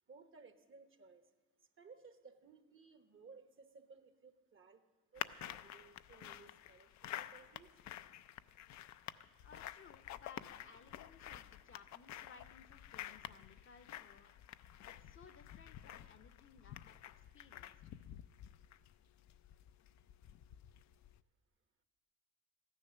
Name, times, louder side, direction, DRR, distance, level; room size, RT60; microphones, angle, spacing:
voice 1, 0.1-1.3 1.8-4.8 5.1-6.9 7.1-7.7, right 4 dB, 40° right, 8 dB, 1.2 m, -60 dB
sound 1, 5.2-21.2, left 12 dB, 65° left, 0.5 m, -50 dB
voice 2, 9.4-14.3 14.8-17.9, left 6 dB, 40° left, 10 dB, 0.8 m, -60 dB
14.0 x 10.0 x 6.4 m, 1.3 s
cardioid pair, 90°, 30 cm